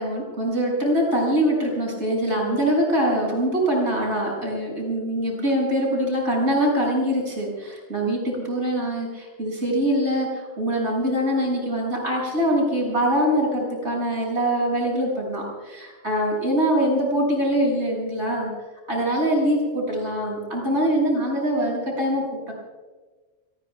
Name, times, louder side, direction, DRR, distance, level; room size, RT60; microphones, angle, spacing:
voice 1, 0.0-18.5 18.9-22.5, equal, 80° right, -2 dB, 7.6 m, -23 dB
30.0 x 20.5 x 2.4 m, 1.3 s
omnidirectional pair, 1.2 m